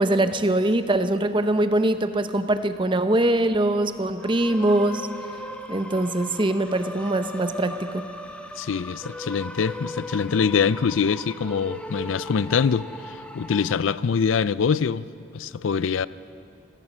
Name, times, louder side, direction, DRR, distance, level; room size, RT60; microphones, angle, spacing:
voice 1, 0.0-5.1 5.7-8.1, right 1 dB, 25° right, 0.8 m, -22 dB
sound 1, 4.2-13.8, left 1 dB, 5° left, 0.9 m, -38 dB
voice 2, 8.6-15.0 15.3-16.1, left 6 dB, 75° left, 0.4 m, -24 dB
26.5 x 17.0 x 6.2 m
head